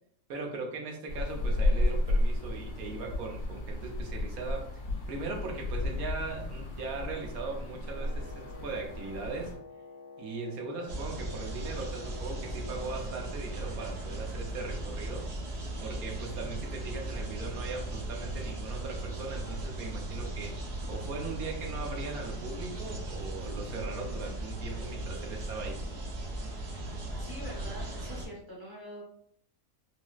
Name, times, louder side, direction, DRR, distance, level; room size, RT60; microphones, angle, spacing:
voice 1, 0.3-4.8 5.1-9.5 10.2-15.2 15.8-20.5 20.9-25.8, right 3 dB, 80° right, 1 dB, 1.1 m, -39 dB
sound 1, 1.1-9.5, left 1 dB, 65° left, 1.0 m, -32 dB
Wind instrument woodwind instrument, 7.9-13.2, left 3 dB, 90° left, 1.2 m, -49 dB
sound 2, 10.9-28.3, right 1 dB, 55° right, 0.8 m, -37 dB
voice 2, 27.2-29.0, equal, 20° left, -5 dB, 0.8 m, -44 dB
4.0 x 2.0 x 2.3 m, 0.65 s
omnidirectional pair, 1.5 m